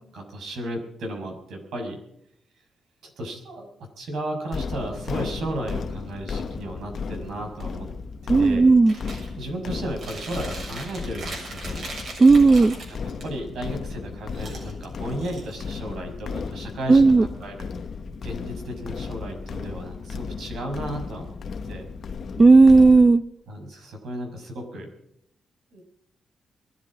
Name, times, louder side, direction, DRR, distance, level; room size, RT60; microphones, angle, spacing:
voice 1, 0.1-2.0 3.2-7.9 8.2-8.7 9.4-11.8 12.9-17.7 18.2-21.4 21.7-21.9 23.5-24.9 25.7-25.8, right 1 dB, 85° right, 3 dB, 6.2 m, -34 dB
sound 1, 4.5-23.1, left 5 dB, 55° left, 1.1 m, -35 dB
voice 2, 8.3-8.9 12.2-12.8 16.9-17.3 22.4-23.2, right 3 dB, 25° right, 14 dB, 0.5 m, -13 dB
Chewing mastication, 8.9-9.3 9.7-13.2 14.3-15.8, right 2 dB, 60° right, 6.9 m, -39 dB
21.5 x 13.0 x 5.0 m, 0.75 s
cardioid pair, 130°, 0 cm